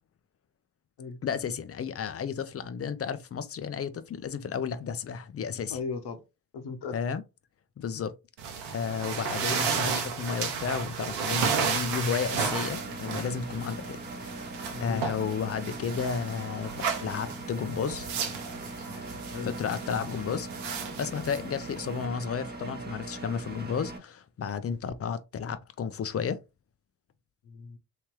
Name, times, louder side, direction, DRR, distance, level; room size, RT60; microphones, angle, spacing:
voice 1, 1.2-5.8 6.9-7.2 7.8-8.1 8.7-14.0 14.8-18.1 19.4-20.5 21.0-26.4, left 6 dB, 30° left, 0.5 m, -32 dB
voice 2, 5.7-6.2 6.5-7.0 14.7-15.0 19.3-19.6 27.4-27.8, left 4 dB, 50° left, 1.1 m, -36 dB
sound 1, 8.4-22.0, right 6 dB, 80° right, 1.0 m, -33 dB
Engine, 12.3-24.0, right 2 dB, 20° right, 1.0 m, -41 dB
3.3 x 3.1 x 3.0 m
hypercardioid pair, 45°, 49 cm